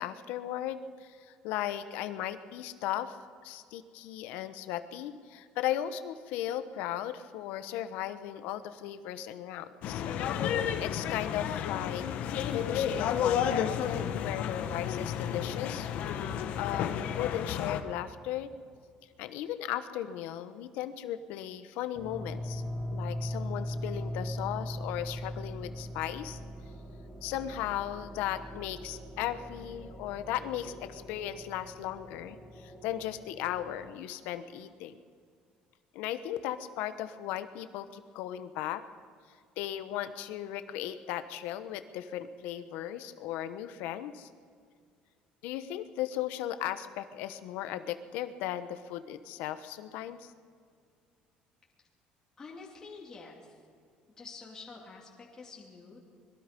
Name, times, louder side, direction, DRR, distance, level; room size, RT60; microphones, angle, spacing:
voice 1, 0.0-3.2 3.4-10.0 10.8-15.9 16.2-18.5 19.2-22.6 22.9-26.4 27.2-35.0 35.9-38.8 39.6-44.3 45.4-50.3, left 12 dB, 80° left, 11 dB, 1.1 m, -36 dB
sound 1, 9.8-17.8, left 8 dB, 55° left, 1.3 m, -32 dB
sound 2, 21.9-33.9, left 1 dB, ahead, 2.1 m, -40 dB
voice 2, 52.4-53.6 54.2-56.0, left 4 dB, 20° left, -3 dB, 3.0 m, -48 dB
25.0 x 22.0 x 5.3 m, 2.2 s
cardioid pair, 160°, 3 cm